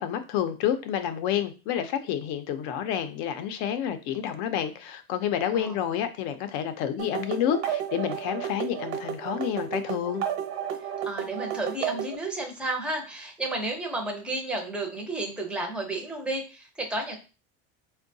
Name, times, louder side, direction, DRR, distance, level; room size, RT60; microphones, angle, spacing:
voice 1, 0.0-10.2, left 9 dB, 55° left, 9 dB, 0.5 m, -29 dB
sound 1, 7.0-12.2, right 9 dB, 90° right, 1.0 m, -32 dB
voice 2, 10.8-17.2, right 2 dB, 5° right, 0 dB, 0.5 m, -32 dB
4.5 x 2.2 x 2.6 m, 0.32 s
cardioid pair, 155°, 35 cm